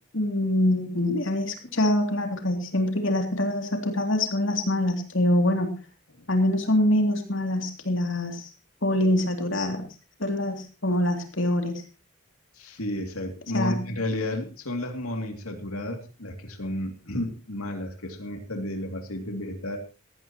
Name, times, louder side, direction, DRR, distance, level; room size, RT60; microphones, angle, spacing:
voice 1, 0.1-5.8 6.3-8.5 8.8-9.8 10.2-11.8 13.5-13.8, left 1 dB, 60° left, 4 dB, 2.8 m, -24 dB
voice 2, 12.5-19.8, left 1 dB, 85° left, 4 dB, 2.6 m, -32 dB
18.0 x 15.5 x 3.0 m, 0.33 s
head